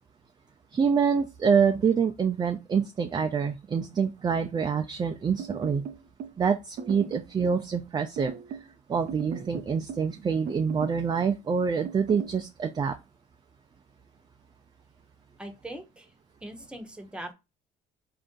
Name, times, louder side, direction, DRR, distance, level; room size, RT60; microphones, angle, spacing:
voice 1, 0.7-5.8 6.4-8.3 8.9-12.9, right 6 dB, 25° right, 5 dB, 0.4 m, -26 dB
sound 1, 5.4-6.4 6.8-7.3 8.2-8.7 9.1-10.1 10.5-11.0 11.8-12.4, right 6 dB, 65° right, 0.7 m, -38 dB
voice 2, 15.4-17.3, right 1 dB, 5° right, 5 dB, 0.9 m, -41 dB
4.6 x 2.6 x 3.7 m, 0.25 s
cardioid pair, 110°, 17 cm